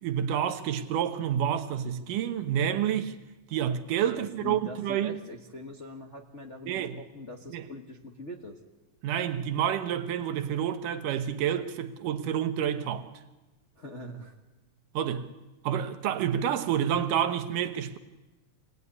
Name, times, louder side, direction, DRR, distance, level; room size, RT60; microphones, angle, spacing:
voice 1, 0.0-3.1 3.5-5.2 6.7-7.0 7.5-7.7 9.0-13.1 14.9-15.3 15.6-18.0, right 9 dB, 80° right, 2.7 m, -29 dB
voice 2, 4.1-8.6 13.8-14.4, left 1 dB, 35° left, 1.1 m, -43 dB
27.0 x 19.5 x 9.7 m
omnidirectional pair, 3.8 m